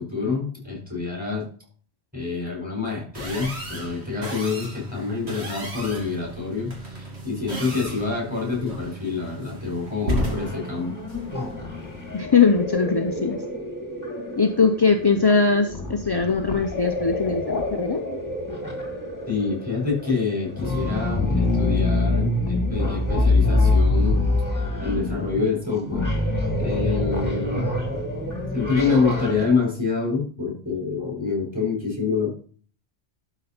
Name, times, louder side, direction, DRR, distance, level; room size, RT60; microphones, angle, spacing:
voice 1, 0.0-1.5 2.1-6.7 7.2-10.9 19.3-24.3 24.8-26.1 26.6-27.7 28.5-32.3, left 4 dB, 5° right, -2 dB, 4.8 m, -26 dB
sound 1, 3.1-12.3, equal, 70° right, 2.7 m, -34 dB
sound 2, 10.2-29.4, left 2 dB, 15° left, 1.7 m, -26 dB
voice 2, 12.1-13.4 14.4-18.0, left 5 dB, 30° left, 5 dB, 0.5 m, -21 dB
12.0 x 5.0 x 4.3 m, 0.44 s
omnidirectional pair, 1.1 m